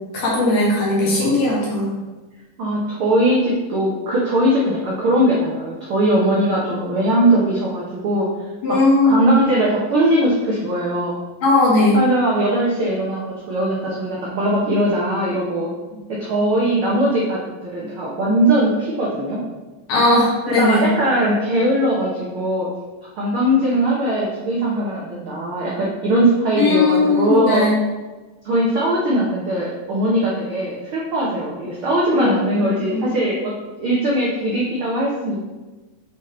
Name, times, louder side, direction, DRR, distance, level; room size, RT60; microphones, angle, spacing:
voice 1, 0.1-1.9 8.6-9.3 11.4-12.0 19.9-20.9 26.6-27.7 32.1-33.2, left 2 dB, 55° left, -5 dB, 2.4 m, -18 dB
voice 2, 2.6-8.3 8.7-8.8 9.0-11.2 11.9-15.7 16.2-17.4 17.7-19.4 20.4-22.7 23.1-27.7 28.4-33.5 33.8-35.5, right 1 dB, 75° right, -5 dB, 1.2 m, -20 dB
6.9 x 4.1 x 4.3 m, 1.2 s
omnidirectional pair, 4.0 m